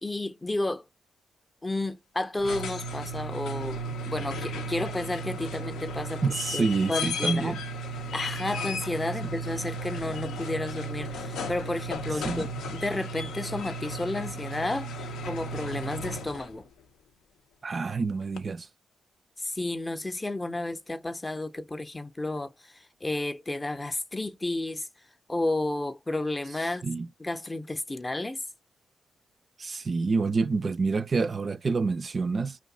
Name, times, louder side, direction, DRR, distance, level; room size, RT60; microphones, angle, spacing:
voice 1, 0.0-0.8 1.6-3.8 4.1-7.6 8.1-12.5 12.7-14.9 15.2-16.7 19.4-24.9 25.3-26.9 27.2-28.4, left 2 dB, 20° left, 0.5 m, -32 dB
sound 1, 2.2-16.6 18.4-18.5, equal, 85° left, 0.5 m, -35 dB
voice 2, 6.2-7.6 9.2-9.3 12.2-12.5 17.6-18.7 26.8-27.1 29.6-32.6, right 4 dB, 45° right, 0.3 m, -27 dB
2.6 x 2.2 x 3.7 m
supercardioid pair, 55°, 0 cm